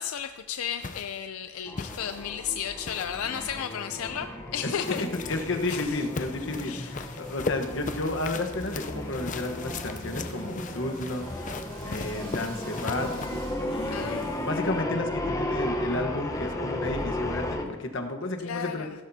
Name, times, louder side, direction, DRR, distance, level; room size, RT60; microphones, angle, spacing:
voice 1, 0.0-5.0 5.7-6.0 6.6-6.9 13.9-14.4 18.4-18.9, left 8 dB, 85° left, 9 dB, 0.5 m, -34 dB
sound 1, 0.8-1.2 1.8-2.3 2.8-3.2 4.8-13.3, left 3 dB, 35° left, 0.6 m, -38 dB
sound 2, 1.7-17.6, left 1 dB, 15° left, 0.9 m, -35 dB
voice 2, 4.6-11.3 11.8-13.1 13.7-18.9, left 2 dB, 60° left, 4 dB, 1.2 m, -32 dB
Domestic sounds home sounds, 6.6-14.8, right 4 dB, 70° right, 2.8 m, -53 dB
15.5 x 12.5 x 2.7 m, 1.2 s
head